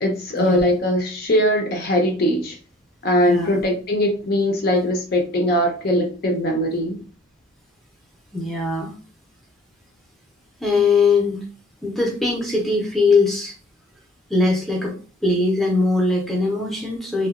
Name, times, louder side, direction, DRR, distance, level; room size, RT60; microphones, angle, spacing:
voice 1, 0.0-2.6 3.0-7.0, equal, 45° left, 2 dB, 0.5 m, -20 dB
voice 2, 3.2-3.6 8.3-8.9 10.6-11.5 11.8-13.5 14.3-14.9 15.2-17.3, left 3 dB, ahead, -1 dB, 0.6 m, -20 dB
2.8 x 2.1 x 2.4 m, 0.37 s
head